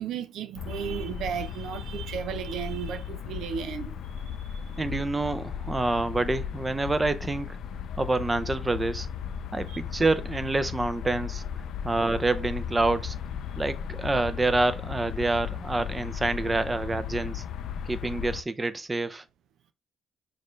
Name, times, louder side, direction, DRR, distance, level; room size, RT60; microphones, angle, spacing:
voice 1, 0.0-4.8 9.7-9.8, right 8 dB, 75° right, 0.4 m, -35 dB
sound 1, 0.6-18.4, left 8 dB, 75° left, 0.4 m, -36 dB
voice 2, 4.8-7.6 8.0-9.1 9.5-11.4 11.8-13.2 13.6-17.4 17.9-19.2, right 2 dB, 20° right, 0.5 m, -27 dB
6.5 x 2.5 x 3.1 m
cardioid pair, 90°, 0 cm